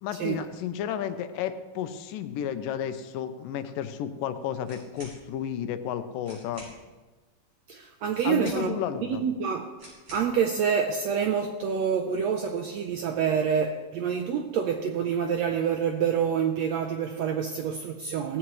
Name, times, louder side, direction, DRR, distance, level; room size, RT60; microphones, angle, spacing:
voice 1, 0.0-6.7 8.2-9.2, left 9 dB, 85° left, 2.5 m, -32 dB
sound 1, 4.6-5.2 5.9-6.0 6.2-6.8 8.1-8.9 9.8-10.3, right 1 dB, 45° right, 6.9 m, -48 dB
voice 2, 7.7-9.7 10.1-18.4, right 7 dB, 75° right, 1.6 m, -27 dB
17.0 x 15.5 x 3.2 m
omnidirectional pair, 3.8 m